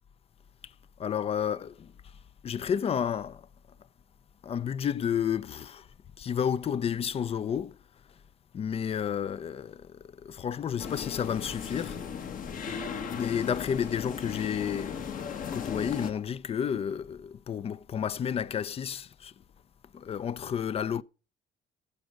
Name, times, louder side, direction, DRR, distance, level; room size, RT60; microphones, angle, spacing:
voice 1, 1.0-1.9 2.4-3.5 4.4-5.9 6.2-7.8 8.5-12.0 12.5-12.7 13.1-19.3 19.9-21.0, left 8 dB, 35° left, 0.5 m, -31 dB
sound 1, 10.8-16.1, left 6 dB, 55° left, 1.4 m, -36 dB
15.0 x 5.1 x 6.3 m
cardioid pair, 110°, 17 cm